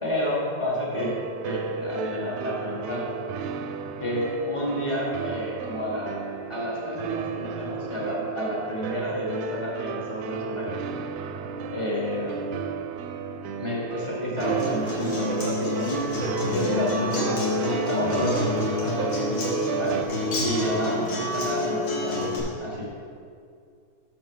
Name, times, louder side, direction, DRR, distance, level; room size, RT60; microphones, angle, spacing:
voice 1, 0.0-1.2 1.4-3.1 4.0-10.7 11.7-12.5 13.6-15.9 16.5-18.5 18.8-20.0 20.4-22.2 22.6-23.0, left 1 dB, 30° left, -5 dB, 0.5 m, -30 dB
sound 1, 0.9-20.0, right 5 dB, 80° right, 1.8 m, -32 dB
Acoustic guitar, 14.4-22.4, left 2 dB, 65° left, 3.1 m, -28 dB
7.8 x 6.7 x 5.5 m, 2.3 s
omnidirectional pair, 3.4 m